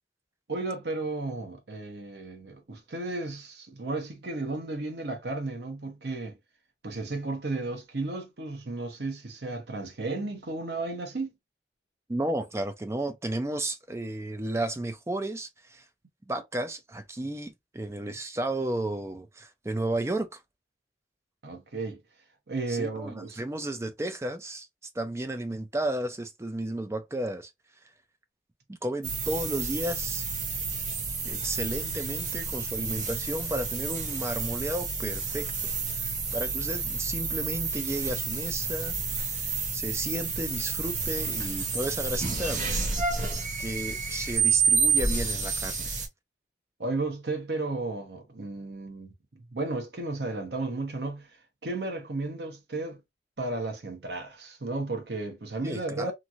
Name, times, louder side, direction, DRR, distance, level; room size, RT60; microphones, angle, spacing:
voice 1, 0.5-6.4 6.8-11.3 21.4-22.0 22.5-23.4 46.8-51.3 51.6-53.0 53.4-56.1, right 2 dB, 75° right, 0.9 m, -34 dB
voice 2, 12.1-15.9 16.2-20.4 22.7-24.7 24.9-27.5 28.7-30.2 31.2-42.9 43.6-46.0 55.6-56.1, right 1 dB, 15° right, 0.4 m, -33 dB
sound 1, 29.0-46.1, right 4 dB, 45° right, 0.7 m, -30 dB
3.0 x 2.5 x 2.5 m
head